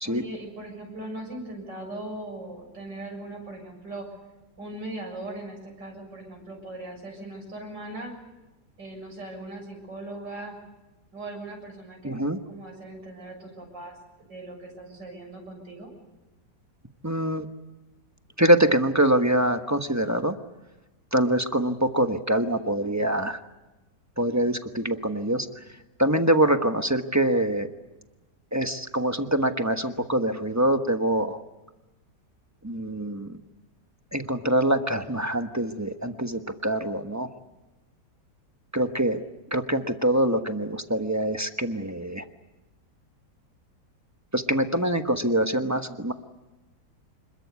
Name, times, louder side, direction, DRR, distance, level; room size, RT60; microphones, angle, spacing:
voice 1, 0.0-4.1 4.6-8.1 8.8-10.6 11.1-12.1 12.5-14.0 14.3-15.9, right 2 dB, 90° right, 2 dB, 7.8 m, -39 dB
voice 2, 12.0-12.4 17.0-17.5 18.4-20.3 21.1-23.4 24.2-25.6 26.0-27.7 28.5-31.4 32.6-33.4 34.1-37.3 38.7-39.2 39.5-42.2 44.3-46.1, right 1 dB, 10° right, 7 dB, 1.1 m, -24 dB
26.5 x 22.0 x 8.4 m, 1.0 s
omnidirectional pair, 1.8 m